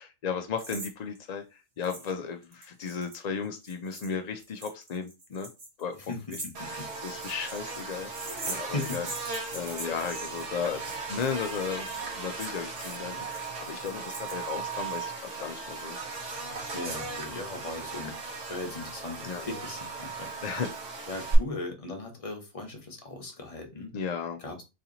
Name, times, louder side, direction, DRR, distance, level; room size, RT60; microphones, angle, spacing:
voice 1, 0.0-5.5 5.8-5.9 6.6-8.1 8.5-9.1 9.5-10.8 11.1-16.0 19.2-19.5 20.4-21.0 23.9-24.4, left 6 dB, 65° left, 6 dB, 0.4 m, -35 dB
jangly ode, 0.6-0.9 1.2-1.3 1.8-2.1 2.4-14.8, right 2 dB, 55° right, 1.5 m, -42 dB
voice 2, 6.1-6.9 8.7-9.0 16.7-18.1 18.5-20.3 21.1-23.9 24.4-24.6, left 2 dB, 30° left, 2 dB, 0.9 m, -38 dB
Buzz, 6.5-21.3, right 4 dB, 75° right, 1.4 m, -37 dB
3.2 x 2.8 x 3.8 m, 0.26 s
omnidirectional pair, 1.3 m